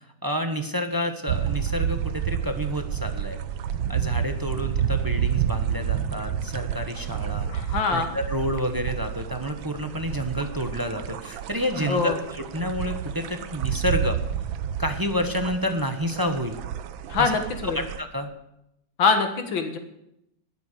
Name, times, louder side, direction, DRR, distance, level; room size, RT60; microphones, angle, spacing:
voice 1, 0.2-3.4 3.9-7.6 7.9-14.2 14.8-16.6 17.2-17.4 17.6-18.3, equal, 15° right, 6 dB, 0.8 m, -29 dB
sound 1, 1.3-18.0, right 9 dB, 85° right, 1.6 m, -30 dB
voice 2, 7.5-8.1 11.8-12.2 17.1-17.8 19.0-19.8, left 5 dB, 80° left, 6 dB, 2.2 m, -24 dB
19.0 x 8.4 x 6.7 m, 0.82 s
omnidirectional pair, 2.1 m